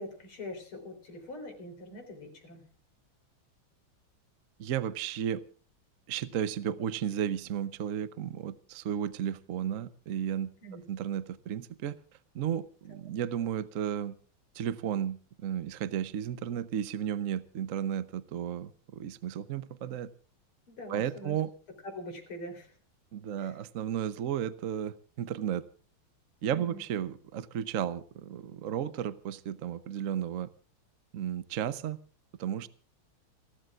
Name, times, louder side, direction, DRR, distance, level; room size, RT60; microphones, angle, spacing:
voice 1, 0.0-2.6 10.6-10.8 20.7-21.4 21.9-22.8 23.4-23.6 26.5-26.8, left 1 dB, 85° left, 5 dB, 4.6 m, -43 dB
voice 2, 4.6-5.4 6.1-10.5 10.9-12.0 12.3-14.2 14.5-20.1 20.9-21.5 23.1-25.6 26.4-30.5 31.1-32.0 32.4-32.7, right 9 dB, 55° right, 14 dB, 0.9 m, -33 dB
29.5 x 12.5 x 2.5 m, 0.41 s
omnidirectional pair, 2.3 m